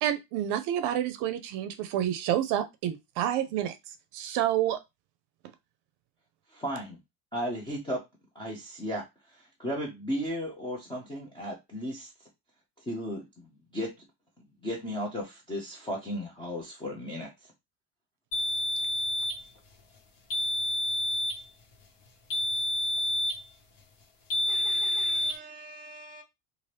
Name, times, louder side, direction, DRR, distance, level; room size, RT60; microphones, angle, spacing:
voice 1, 0.0-3.8 4.1-4.8, right 11 dB, 60° right, 0.5 m, -28 dB
voice 2, 6.5-7.0 7.3-8.0 8.4-12.1 12.8-13.9 14.6-17.3, equal, 10° left, 0.3 m, -35 dB
sound 1, 18.3-19.4 20.3-21.4 22.3-23.4 24.3-25.4, left 1 dB, 60° left, 1.2 m, -29 dB
voice 3, 24.5-26.2, right 2 dB, 15° right, 0.7 m, -47 dB
2.7 x 2.5 x 3.1 m
cardioid pair, 155°, 47 cm